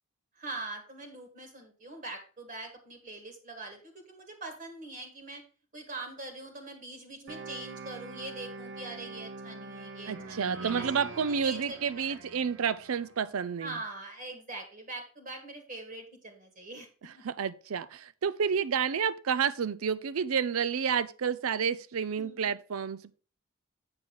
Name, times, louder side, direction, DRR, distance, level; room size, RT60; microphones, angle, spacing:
voice 1, 0.3-5.4 5.7-10.9 11.1-12.4 13.6-16.9 17.1-17.2 22.2-22.6, right 2 dB, 35° right, 1.5 m, -43 dB
sound 1, 7.3-13.2, right 3 dB, 55° right, 1.0 m, -43 dB
voice 2, 10.1-13.8 17.2-23.1, right 6 dB, 80° right, 0.5 m, -30 dB
7.8 x 6.2 x 3.8 m
head